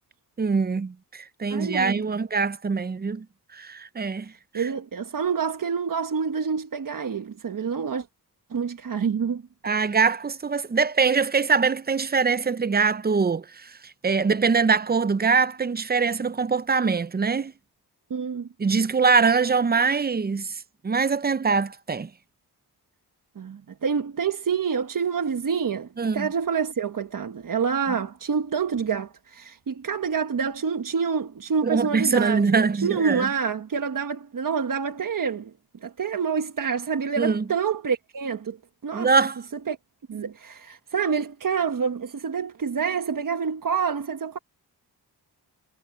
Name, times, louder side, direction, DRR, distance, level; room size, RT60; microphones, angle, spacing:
voice 1, 0.4-3.3 3.5-4.7 9.6-17.5 18.6-22.1 26.0-26.3 27.9-28.0 31.6-33.3 37.2-37.4 38.9-39.4, right 5 dB, 25° right, 0.6 m, -23 dB
voice 2, 1.5-2.0 4.5-8.0 8.5-9.4 18.1-18.5 23.4-35.5 35.8-38.6 38.8-39.1 39.7-39.8 40.1-44.4, right 6 dB, 55° right, 1.3 m, -27 dB
cardioid pair, 85°, 39 cm